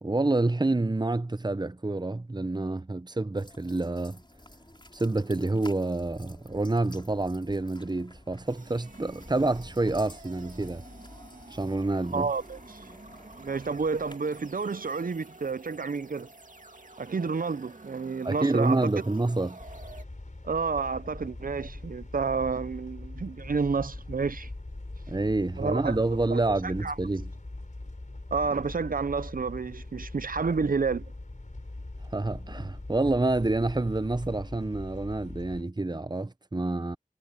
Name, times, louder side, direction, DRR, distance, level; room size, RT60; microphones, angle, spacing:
voice 1, 0.0-4.2 4.9-10.8 11.5-12.3 18.2-19.6 25.1-27.3 32.1-37.0, right 2 dB, 30° right, 0.7 m, -28 dB
sound 1, 3.4-14.1, left 1 dB, 35° left, 5.4 m, -51 dB
sound 2, 8.5-20.0, right 2 dB, 70° right, 2.5 m, -49 dB
voice 2, 12.1-12.8 13.4-16.3 17.0-18.8 20.4-24.5 25.6-26.0 26.3-26.4 26.8-27.0 28.3-31.1, right 4 dB, 90° right, 0.5 m, -30 dB
sound 3, 19.6-35.6, left 2 dB, 65° left, 4.2 m, -42 dB
wide cardioid pair, 40°, 14 cm